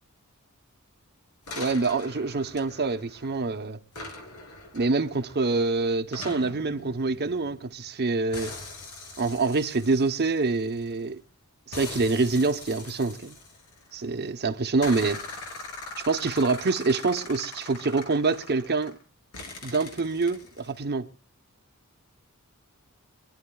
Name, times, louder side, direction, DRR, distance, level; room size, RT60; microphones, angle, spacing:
sound 1, 1.5-3.5 3.9-7.9 8.3-11.1 11.7-14.2 14.8-19.0 19.3-20.8, left 3 dB, 90° left, 3.1 m, -42 dB
voice 1, 1.6-3.8 4.7-8.5 9.2-11.2 11.7-13.4 13.9-15.2 16.0-19.0 19.6-21.1, right 3 dB, 50° right, 0.9 m, -26 dB
25.5 x 10.5 x 2.3 m
head